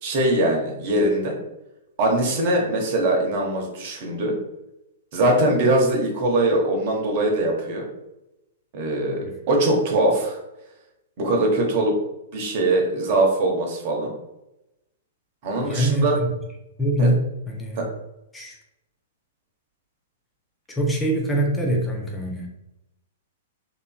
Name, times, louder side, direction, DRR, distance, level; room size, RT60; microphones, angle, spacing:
voice 1, 0.0-1.4 2.0-4.3 5.1-7.9 8.7-10.4 11.2-12.0 12.3-14.1 15.4-16.2 17.0-17.1 17.7-17.9, right 1 dB, 40° right, 1 dB, 0.8 m, -22 dB
voice 2, 15.6-16.1 16.8-17.2 17.5-17.9 18.3-18.6 20.7-22.5, right 1 dB, 10° left, 0 dB, 0.5 m, -23 dB
3.0 x 2.5 x 2.2 m, 0.91 s
figure-of-eight pair, 105°, 0 cm